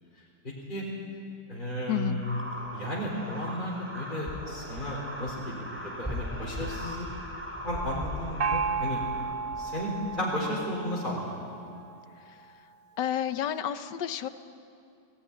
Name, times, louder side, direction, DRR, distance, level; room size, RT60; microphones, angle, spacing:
voice 1, 0.4-0.8 1.5-2.4 2.7-7.1 7.6-9.0 9.6-11.3 11.6-11.7, left 1 dB, 25° left, -6 dB, 4.1 m, -33 dB
voice 2, 1.9-2.2 13.0-14.3, left 10 dB, 75° left, 12 dB, 1.5 m, -30 dB
sound 1, 2.1-10.2, equal, 5° right, 3.0 m, -39 dB
Gong, 8.4-11.9, right 5 dB, 60° right, 1.6 m, -33 dB
19.5 x 18.0 x 10.0 m, 2.5 s
omnidirectional pair, 1.9 m